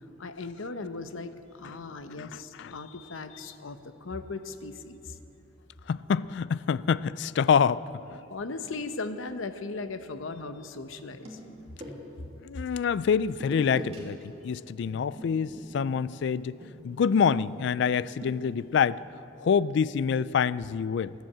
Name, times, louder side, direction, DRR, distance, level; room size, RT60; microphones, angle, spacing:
voice 1, 0.2-5.1 8.3-11.7, left 3 dB, 85° left, 9 dB, 0.8 m, -38 dB
voice 2, 2.2-2.7 5.9-7.8 8.1-8.2 12.4-16.6 16.8-19.0 19.4-21.1, left 6 dB, 60° left, 19 dB, 0.3 m, -26 dB
sound 1, 10.9-12.3 13.3-14.0 14.3-14.5 14.9-18.9, right 1 dB, 30° right, 2.4 m, -44 dB
15.5 x 10.5 x 7.3 m, 2.8 s
head